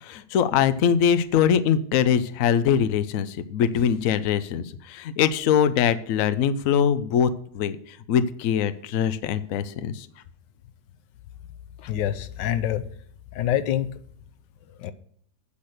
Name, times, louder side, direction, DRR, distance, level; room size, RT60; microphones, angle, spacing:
voice 1, 0.0-10.1, left 8 dB, 65° left, 12 dB, 0.9 m, -23 dB
voice 2, 11.8-12.8 13.3-13.9 14.8-14.9, left 11 dB, 90° left, 11 dB, 1.4 m, -26 dB
8.7 x 6.0 x 6.5 m, 0.64 s
omnidirectional pair, 1.8 m